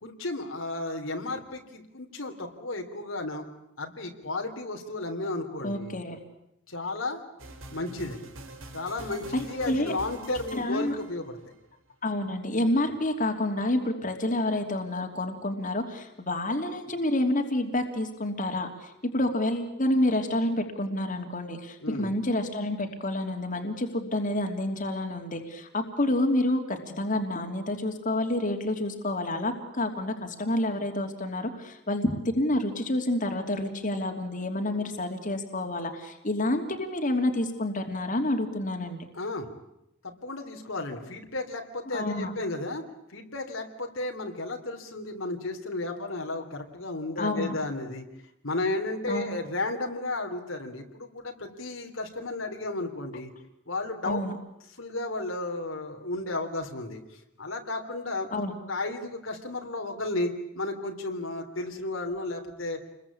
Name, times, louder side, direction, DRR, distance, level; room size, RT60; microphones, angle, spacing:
voice 1, 0.0-3.5 3.8-6.0 6.7-7.2 7.7-8.2 8.7-11.4 21.8-22.1 39.1-39.5 40.0-42.8 43.1-48.0 48.4-53.3 53.7-54.2 54.8-57.0 57.4-58.3 58.7-62.8, left 2 dB, 75° left, 3 dB, 3.4 m, -33 dB
voice 2, 5.6-6.2 9.3-9.9 10.5-11.0 12.0-39.0 41.9-42.3 47.2-47.5 49.1-49.3 54.0-54.3 58.3-58.5, left 1 dB, 40° left, 4 dB, 3.0 m, -28 dB
sound 1, 7.4-11.6, right 1 dB, 80° right, 4.3 m, -45 dB
29.0 x 22.0 x 8.6 m, 0.84 s
head